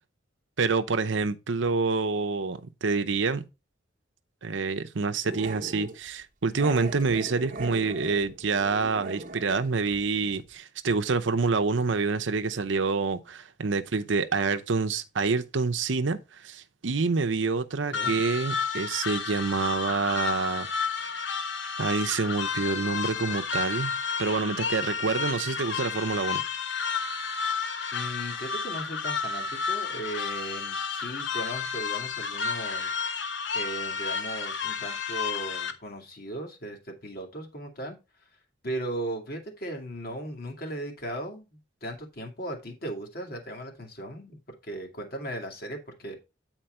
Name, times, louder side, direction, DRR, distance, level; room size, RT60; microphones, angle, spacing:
voice 1, 0.6-3.4 4.4-20.7 21.8-23.9 24.2-26.4, right 4 dB, 75° right, 0.7 m, -27 dB
Growling, 5.2-6.0 6.6-9.6 9.9-10.0 10.3-10.4, right 2 dB, 45° right, 1.0 m, -39 dB
sound 1, 17.9-35.7, left 5 dB, 70° left, 0.9 m, -31 dB
voice 2, 17.9-18.2 27.9-32.9 33.5-38.0 38.6-41.5 41.8-46.2, right 1 dB, 50° left, 2.1 m, -37 dB
9.1 x 4.4 x 4.3 m
head